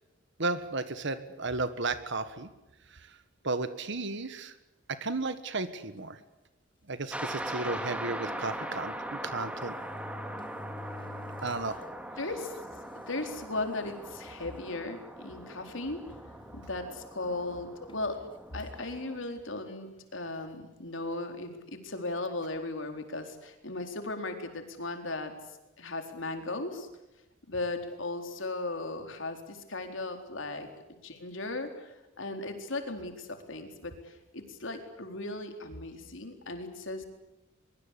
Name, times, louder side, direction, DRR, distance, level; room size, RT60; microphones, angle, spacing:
voice 1, 0.4-2.5 3.4-4.5 5.0-6.2 6.9-9.7 11.4-11.8, right 3 dB, 65° right, 12 dB, 1.5 m, -33 dB
sound 1, 6.0-6.2 7.0-7.1 7.4-7.5 8.8-8.9 9.6-11.8 12.3-12.4 13.2-13.3 13.7-14.0 14.7-14.8 16.1-16.9 17.9-18.1, left 2 dB, 25° left, 1.3 m, -47 dB
sound 2, 7.1-19.2, right 1 dB, 5° right, 2.3 m, -41 dB
voice 2, 12.2-12.5 13.1-16.0 16.5-18.2 18.5-25.3 25.8-26.9 27.5-37.0, left 2 dB, 70° left, 5 dB, 4.2 m, -37 dB
23.5 x 23.0 x 8.5 m, 0.99 s
head